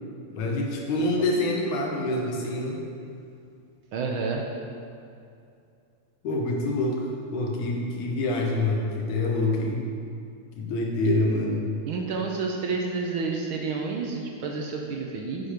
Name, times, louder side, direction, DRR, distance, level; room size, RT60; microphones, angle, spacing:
voice 1, 0.3-2.8 6.2-9.8 10.6-11.7, left 2 dB, 90° left, 0 dB, 2.7 m, -26 dB
voice 2, 3.9-4.4 11.8-15.5, right 4 dB, 75° right, 1 dB, 1.2 m, -29 dB
10.5 x 7.0 x 5.1 m, 2.5 s
omnidirectional pair, 3.3 m